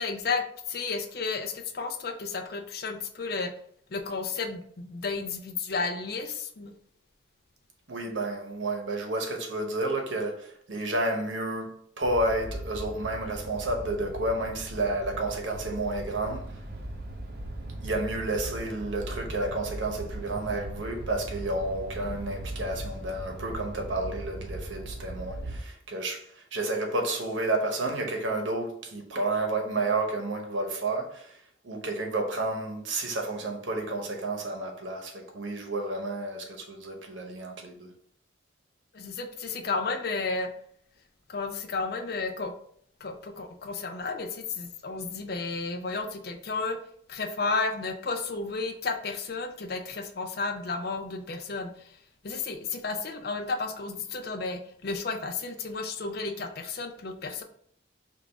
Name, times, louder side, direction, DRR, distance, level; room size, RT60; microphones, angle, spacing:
voice 1, 0.0-3.5 3.9-6.7 38.9-40.5 41.3-42.5 43.0-46.8 47.1-52.0 52.2-57.4, left 4 dB, 50° left, 0.5 m, -32 dB
voice 2, 7.9-16.6 17.8-37.9, right 2 dB, 75° right, 1.0 m, -31 dB
sound 1, 12.0-25.6, right 1 dB, 50° right, 0.7 m, -39 dB
5.4 x 2.5 x 3.4 m
head